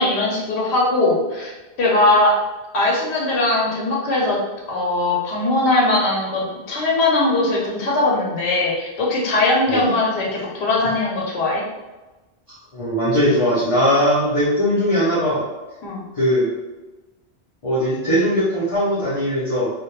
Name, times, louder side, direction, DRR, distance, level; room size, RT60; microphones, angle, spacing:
voice 1, 0.0-1.5 1.8-2.4 2.7-4.4 4.7-11.6 15.8-16.0, left 2 dB, 80° left, -3 dB, 1.0 m, -20 dB
voice 2, 12.5-15.4 16.2-16.5 17.6-19.7, equal, 35° left, -11 dB, 0.7 m, -20 dB
2.2 x 2.1 x 3.0 m, 1.1 s
omnidirectional pair, 1.1 m